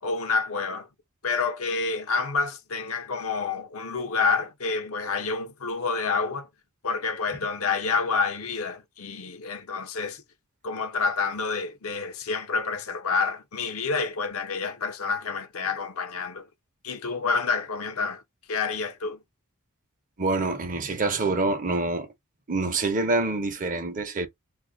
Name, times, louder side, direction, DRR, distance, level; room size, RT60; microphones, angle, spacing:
voice 1, 0.0-0.9 1.2-6.5 6.8-10.2 10.6-16.5 16.8-18.2 18.5-19.2, left 4 dB, 70° left, 0.8 m, -28 dB
voice 2, 20.2-22.1 22.5-24.3, right 3 dB, 35° right, 0.8 m, -26 dB
2.7 x 2.5 x 3.8 m
head